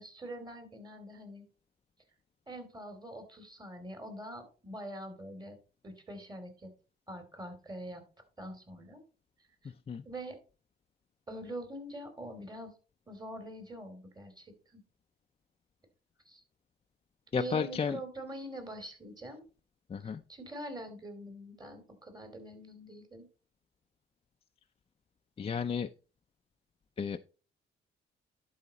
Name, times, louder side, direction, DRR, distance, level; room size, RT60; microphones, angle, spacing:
voice 1, 0.0-1.4 2.5-5.6 5.8-6.7 7.1-8.0 8.4-9.0 9.6-9.7 10.0-10.4 11.3-12.7 13.1-14.8 16.3-16.4 17.3-19.4 20.0-23.3, right 1 dB, 20° right, 6 dB, 2.9 m, -44 dB
voice 2, 17.3-18.0 19.9-20.2 25.4-25.9 27.0-27.2, left 6 dB, 30° left, 6 dB, 0.4 m, -32 dB
11.0 x 4.8 x 4.2 m, 0.35 s
cardioid pair, 90°, 20 cm